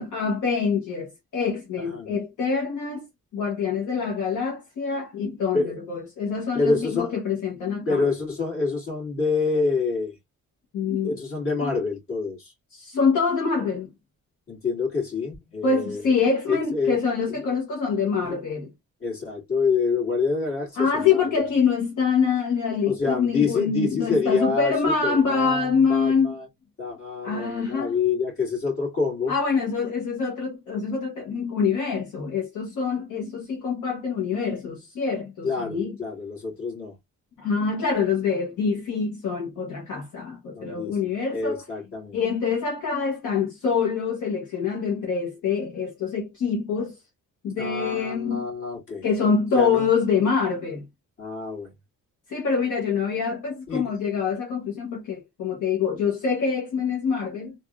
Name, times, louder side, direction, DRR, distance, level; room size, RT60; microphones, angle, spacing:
voice 1, 0.0-3.1 3.3-8.0 10.7-11.2 11.6-11.7 12.7-13.9 15.6-18.7 20.8-26.4 27.2-27.9 29.3-36.0 37.4-41.6 42.1-47.0 47.4-48.5 49.0-50.8 52.3-57.5, left 5 dB, 65° left, 1.2 m, -25 dB
voice 2, 1.8-2.1 5.5-5.8 6.5-7.1 7.9-10.2 11.0-12.5 14.5-16.0 16.5-17.0 18.2-18.4 19.0-21.2 22.9-26.5 26.8-29.3 35.4-36.9 40.5-41.0 41.3-42.2 47.6-49.0 49.5-49.8 51.2-51.7 53.7-53.9, left 4 dB, 40° left, 2.1 m, -27 dB
3.4 x 2.5 x 2.3 m
cardioid pair, 160°, 33 cm